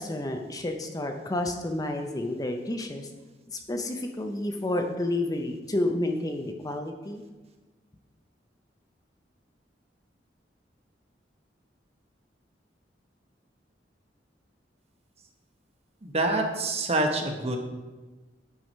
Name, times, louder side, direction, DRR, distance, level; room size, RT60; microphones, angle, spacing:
voice 1, 0.0-3.1 3.5-7.2, left 1 dB, 20° left, 4 dB, 0.6 m, -30 dB
voice 2, 16.0-17.6, right 2 dB, 35° right, 3 dB, 1.1 m, -26 dB
9.2 x 4.8 x 5.4 m, 1.2 s
head